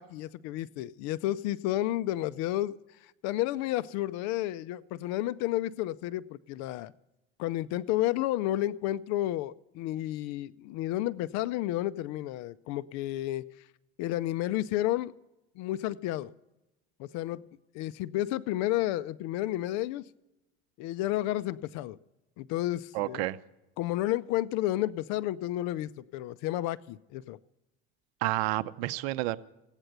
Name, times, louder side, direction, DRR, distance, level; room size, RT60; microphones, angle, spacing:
voice 1, 0.0-2.7 3.2-6.9 7.4-13.4 14.0-15.1 15.6-16.3 17.0-17.4 17.7-20.0 20.8-22.0 22.4-23.3 23.8-27.4, left 15 dB, 65° left, 17 dB, 0.5 m, -31 dB
voice 2, 22.9-23.4 28.2-29.4, right 17 dB, 85° right, 15 dB, 0.7 m, -30 dB
16.0 x 9.0 x 8.0 m, 0.96 s
cardioid pair, 140°, 30 cm